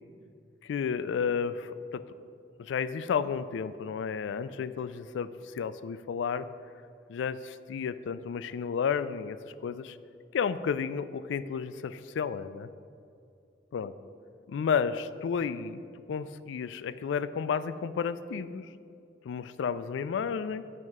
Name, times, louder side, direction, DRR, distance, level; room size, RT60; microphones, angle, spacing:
voice 1, 0.6-2.0 2.6-6.5 7.1-9.4 9.6-10.0 10.3-12.7 13.7-13.9 14.5-15.8 16.1-18.7 19.2-20.6, left 6 dB, 85° left, 14 dB, 0.3 m, -32 dB
7.6 x 5.3 x 4.8 m, 2.4 s
head